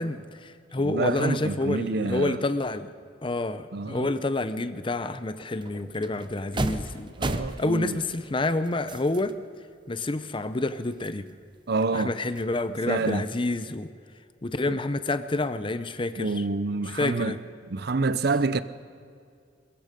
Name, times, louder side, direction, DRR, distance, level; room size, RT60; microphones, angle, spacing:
voice 1, 0.0-2.9 3.2-7.1 7.6-9.4 9.9-11.3 11.9-13.9 14.4-16.4 16.9-17.4, left 2 dB, 25° left, 0.7 m, -28 dB
voice 2, 0.8-2.4 3.7-4.1 7.2-8.0 11.7-12.1 12.9-13.3 14.7-14.8 16.2-17.4 17.7-18.6, right 3 dB, 60° right, 0.7 m, -27 dB
sound 1, 5.2-5.3 5.6-9.4 9.9-10.0 10.4-12.0 12.4-13.6, right 2 dB, 25° right, 0.8 m, -36 dB
22.5 x 22.0 x 5.3 m
head